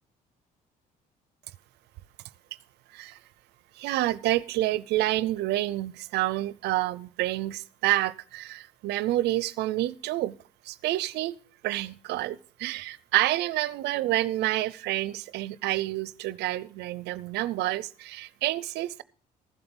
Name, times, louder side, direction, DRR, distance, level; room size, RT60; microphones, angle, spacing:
voice 1, 3.8-10.3 10.7-11.4 11.6-19.0, right 16 dB, 80° right, 0.6 m, -28 dB
15.0 x 7.9 x 5.4 m
cardioid pair, 110°, 17 cm